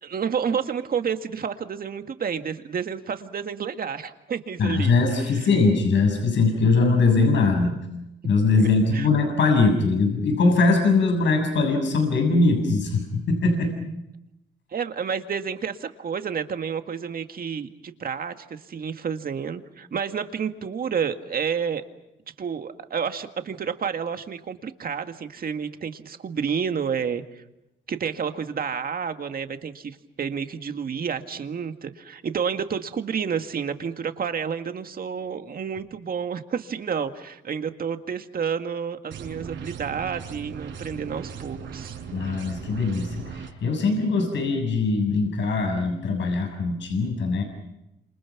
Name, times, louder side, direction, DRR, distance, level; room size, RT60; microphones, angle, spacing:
voice 1, 0.0-5.5 8.6-9.1 14.7-21.8 22.4-27.4 27.9-41.9, right 7 dB, 45° right, 8 dB, 2.0 m, -30 dB
voice 2, 4.6-7.8 8.2-13.7 42.1-47.4, left 3 dB, 65° left, 3 dB, 6.9 m, -21 dB
sound 1, 39.1-43.5, right 6 dB, 70° right, 5.4 m, -38 dB
29.0 x 27.5 x 6.0 m, 0.91 s
cardioid pair, 90°, 20 cm